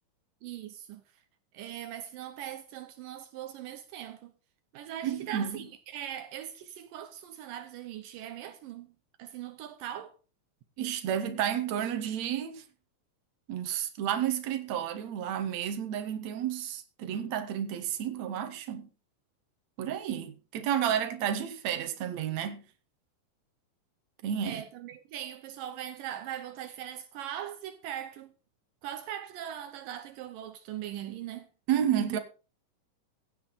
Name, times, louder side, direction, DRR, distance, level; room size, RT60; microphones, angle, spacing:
voice 1, 0.4-1.2 1.5-4.3 4.7-8.9 9.2-10.2 24.4-28.3 28.8-31.5, right 11 dB, 80° right, 2.6 m, -40 dB
voice 2, 5.0-5.6 10.8-12.6 13.5-18.9 19.8-22.6 24.2-24.6 31.7-32.2, right 9 dB, 60° right, 2.7 m, -31 dB
16.5 x 10.0 x 4.2 m
omnidirectional pair, 4.0 m